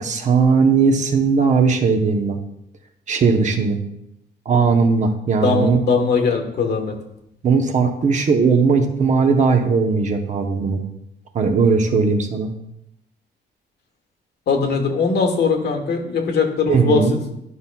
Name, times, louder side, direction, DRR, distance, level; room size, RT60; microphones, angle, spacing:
voice 1, 0.0-2.4 3.1-3.8 4.5-5.8 7.4-10.8 11.3-12.5 16.7-17.1, right 5 dB, 40° right, 4 dB, 0.8 m, -18 dB
voice 2, 5.4-6.9 14.5-17.0, left 4 dB, 65° left, 4 dB, 1.2 m, -20 dB
11.0 x 5.6 x 2.2 m, 0.82 s
cardioid pair, 150°, 18 cm